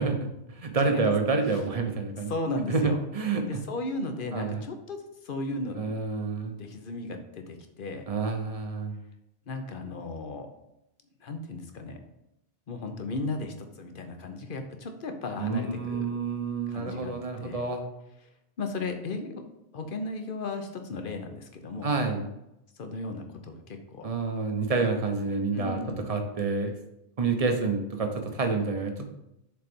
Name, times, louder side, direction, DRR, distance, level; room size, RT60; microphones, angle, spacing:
voice 1, 0.0-2.3 2.7-3.6 4.3-4.6 5.8-6.6 8.1-9.0 15.4-17.8 21.8-22.3 24.0-25.8 26.1-26.7 27.2-29.1, right 4 dB, 35° right, 5 dB, 0.9 m, -28 dB
voice 2, 2.3-3.0 3.5-5.8 6.5-8.1 9.5-10.5 11.2-12.0 12.7-16.1 16.7-17.1 17.4-17.6 18.6-19.4 19.7-21.9 22.8-24.1 25.5-26.1, left 2 dB, 55° left, 6 dB, 1.0 m, -35 dB
6.8 x 4.0 x 5.2 m, 0.87 s
omnidirectional pair, 1.1 m